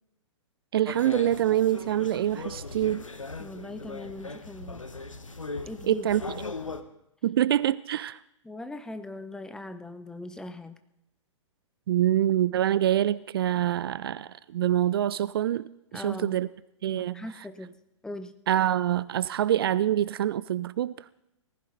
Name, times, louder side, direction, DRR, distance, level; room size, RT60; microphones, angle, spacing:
voice 1, 0.7-3.0 5.9-6.4 7.2-8.2 11.9-15.6 15.9-16.5 16.8-17.2 18.5-21.1, right 11 dB, 50° right, 0.4 m, -25 dB
sound 1, 0.9-6.8, left 3 dB, 85° left, 1.2 m, -38 dB
voice 2, 3.4-4.8 5.6-6.1 8.4-10.8 15.9-16.4 16.9-17.7 18.0-18.3, left 2 dB, 5° left, 0.7 m, -40 dB
18.5 x 15.5 x 4.0 m
figure-of-eight pair, 115°, 16 cm